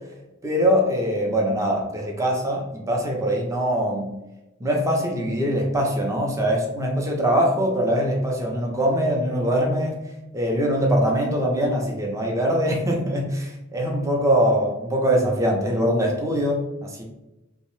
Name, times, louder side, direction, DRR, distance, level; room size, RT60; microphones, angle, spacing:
voice 1, 0.4-4.1 4.6-10.0 10.3-17.0, equal, 15° right, 0 dB, 0.4 m, -22 dB
2.6 x 2.0 x 3.0 m, 0.96 s
head